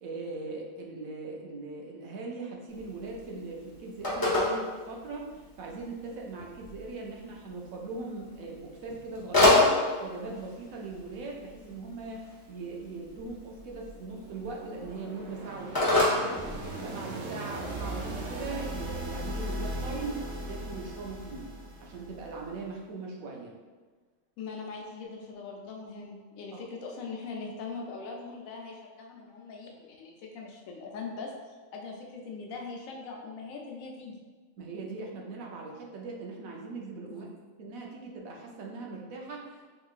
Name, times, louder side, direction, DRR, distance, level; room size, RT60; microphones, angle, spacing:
voice 1, 0.0-16.4 16.7-21.5 21.8-23.5 26.5-26.6 34.6-37.3 37.6-39.7, right 3 dB, 80° right, 0 dB, 1.1 m, -40 dB
Telephone, 2.7-17.2, left 2 dB, 20° left, 0.6 m, -30 dB
sound 1, 13.9-22.6, right 1 dB, 60° right, 0.7 m, -38 dB
voice 2, 24.4-34.2 37.1-37.3, left 4 dB, 80° left, 0 dB, 1.0 m, -41 dB
3.8 x 3.1 x 2.4 m, 1.4 s
omnidirectional pair, 1.4 m